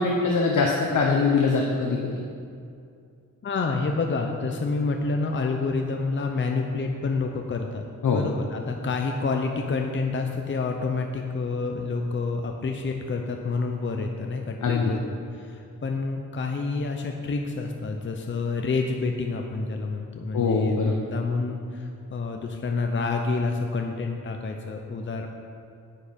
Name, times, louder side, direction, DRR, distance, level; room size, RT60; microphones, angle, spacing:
voice 1, 0.0-2.2 8.0-8.2 14.6-14.9 20.3-21.0, left 4 dB, 65° left, 0 dB, 1.0 m, -23 dB
voice 2, 3.4-7.8 8.1-15.0 15.3-25.3, left 4 dB, 35° left, 3 dB, 0.7 m, -28 dB
10.0 x 8.6 x 5.2 m, 2.4 s
wide cardioid pair, 145°, 32 cm